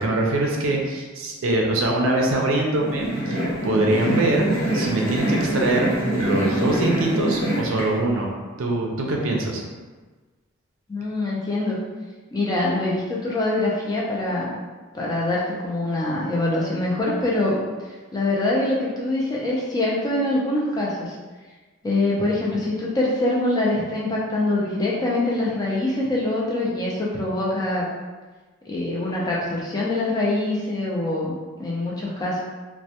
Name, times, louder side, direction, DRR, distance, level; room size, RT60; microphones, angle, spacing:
voice 1, 0.0-5.9 6.2-8.3 8.6-9.6, right 2 dB, 70° right, 0 dB, 0.4 m, -23 dB
sound 1, 2.7-7.8, right 1 dB, 85° left, 0.9 m, -24 dB
voice 2, 10.9-11.8 12.3-14.6 14.9-17.6 17.9-21.2 21.8-27.9 28.7-32.4, left 2 dB, 20° left, -5 dB, 0.3 m, -24 dB
2.1 x 2.1 x 2.7 m, 1.3 s
head